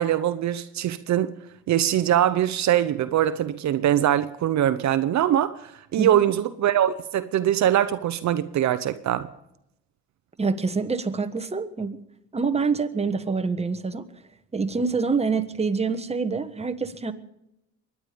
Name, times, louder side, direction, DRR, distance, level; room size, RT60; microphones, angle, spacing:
voice 1, 0.0-1.3 1.7-9.3, right 11 dB, 65° right, 0.8 m, -22 dB
voice 2, 10.4-12.0 12.3-14.0 14.5-17.1, right 4 dB, 20° right, 1.4 m, -26 dB
23.0 x 10.0 x 5.2 m
cardioid pair, 90°, 30 cm